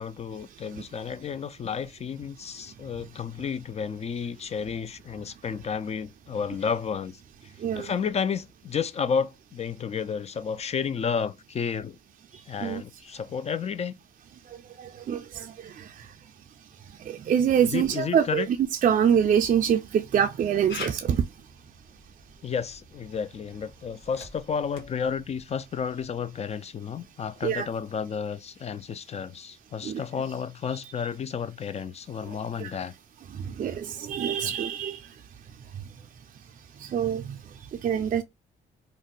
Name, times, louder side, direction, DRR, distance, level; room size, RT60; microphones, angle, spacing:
voice 1, 0.0-7.2 7.8-12.0 12.5-13.9 17.6-18.5 22.4-32.9 34.4-34.5, left 6 dB, 35° left, 0.3 m, -31 dB
voice 2, 15.1-15.4 17.3-18.6 18.8-21.2 27.4-27.7 29.8-30.0 32.6-32.7 33.6-35.0 36.9-37.2 37.8-38.2, right 8 dB, 40° right, 0.4 m, -24 dB
Camera, 20.7-26.1, left 4 dB, 70° left, 1.2 m, -45 dB
2.6 x 2.1 x 3.8 m
cardioid pair, 90°, 20 cm